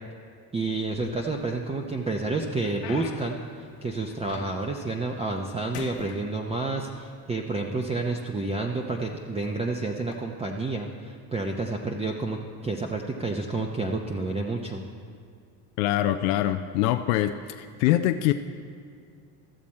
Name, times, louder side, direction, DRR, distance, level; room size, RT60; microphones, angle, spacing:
voice 1, 0.5-14.9, right 3 dB, 15° right, 1 dB, 0.6 m, -30 dB
sound 1, 0.9-1.6 2.1-4.8 5.2-5.5 5.7-7.0 7.8-7.9 8.6-8.8 10.0-10.2, left 7 dB, 65° left, 1.2 m, -43 dB
voice 2, 15.8-18.3, left 13 dB, 80° left, 8 dB, 0.5 m, -24 dB
14.0 x 7.2 x 4.3 m, 2.3 s
supercardioid pair, 90°, 46 cm